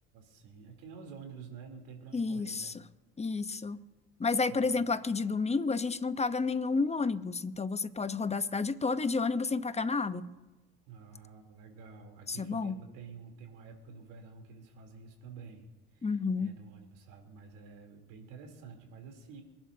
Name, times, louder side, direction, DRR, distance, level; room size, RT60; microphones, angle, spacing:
voice 1, 0.1-2.8 4.5-4.9 10.9-19.4, right 5 dB, 75° right, 2 dB, 3.6 m, -50 dB
voice 2, 2.1-2.7 3.2-3.8 4.2-10.3 12.3-12.8 16.0-16.5, left 4 dB, 20° left, 12 dB, 1.0 m, -30 dB
26.5 x 11.5 x 2.8 m, 1.1 s
hypercardioid pair, 70°, 31 cm